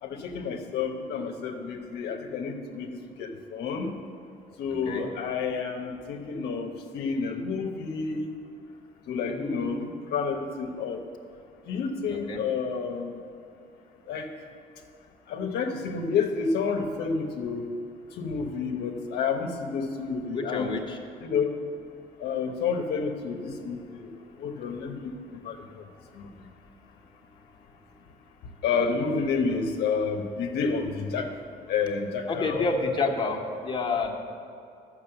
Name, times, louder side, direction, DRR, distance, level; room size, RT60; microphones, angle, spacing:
voice 1, 0.0-3.9 4.6-8.3 9.1-11.0 11.7-13.2 14.1-14.3 15.3-17.7 18.2-20.8 21.2-21.6 22.2-24.1 24.4-25.8 26.2-26.3 28.6-31.3 31.7-32.7, left 5 dB, 75° left, 3 dB, 1.0 m, -30 dB
voice 2, 4.7-5.1 9.3-9.9 12.1-12.4 20.3-21.0 32.3-34.1, left 3 dB, 30° left, 1 dB, 1.5 m, -29 dB
12.0 x 6.4 x 7.9 m, 2.5 s
cardioid pair, 110°, 17 cm